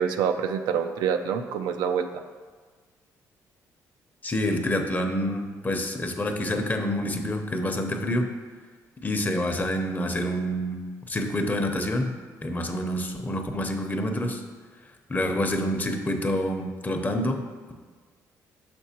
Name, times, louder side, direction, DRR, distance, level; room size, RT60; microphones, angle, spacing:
voice 1, 0.0-2.1, right 7 dB, 90° right, 6 dB, 0.4 m, -26 dB
voice 2, 4.2-8.3 9.0-12.1 12.4-14.4 15.1-17.4, left 1 dB, 25° left, 5 dB, 0.7 m, -27 dB
6.4 x 6.0 x 2.9 m, 1.5 s
cardioid pair, 85°, 7 cm